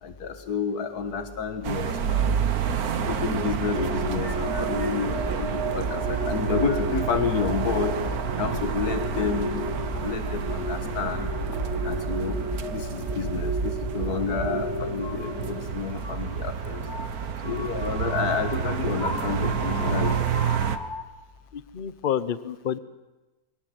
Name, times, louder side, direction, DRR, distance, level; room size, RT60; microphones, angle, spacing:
voice 1, 0.0-2.3 2.9-11.3 11.8-12.4 12.7-16.9 17.4-20.4, left 5 dB, 90° left, 8 dB, 2.0 m, -30 dB
sound 1, 1.6-20.8, right 7 dB, 75° right, 1.6 m, -29 dB
sound 2, 2.7-14.5 14.9-21.0, left 1 dB, 20° left, 1.2 m, -37 dB
sound 3, 3.7-15.6, right 1 dB, 50° right, 5.1 m, -33 dB
voice 2, 3.8-4.2 21.5-22.8, left 9 dB, 40° left, 15 dB, 0.9 m, -30 dB
23.5 x 17.5 x 7.8 m, 1.1 s
omnidirectional pair, 1.6 m